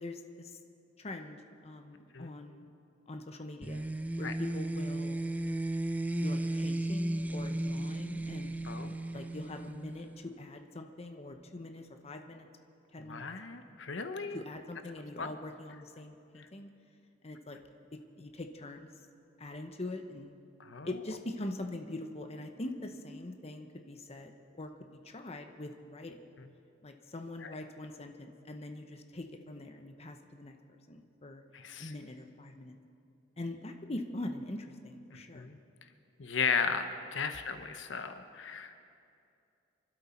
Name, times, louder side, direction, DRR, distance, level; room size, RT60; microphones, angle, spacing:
voice 1, 0.0-0.5 1.0-2.7 3.1-3.8 4.2-5.2 6.2-8.5 9.1-12.5 12.9-13.2 14.3-16.7 17.2-17.6 17.9-18.9 19.4-20.3 20.8-24.7 25.0-26.2 26.8-30.6 30.9-31.4 31.8-32.7 33.4-35.5, left 1 dB, 35° left, 5 dB, 0.9 m, -43 dB
sound 1, 3.6-10.3, right 1 dB, 10° right, 0.4 m, -35 dB
voice 2, 8.6-8.9 13.0-14.4 15.2-15.3 20.6-20.9 27.4-27.5 31.5-31.9 35.3-35.6 36.2-38.8, left 5 dB, 80° left, 8 dB, 0.9 m, -35 dB
26.5 x 12.0 x 4.4 m, 2.5 s
head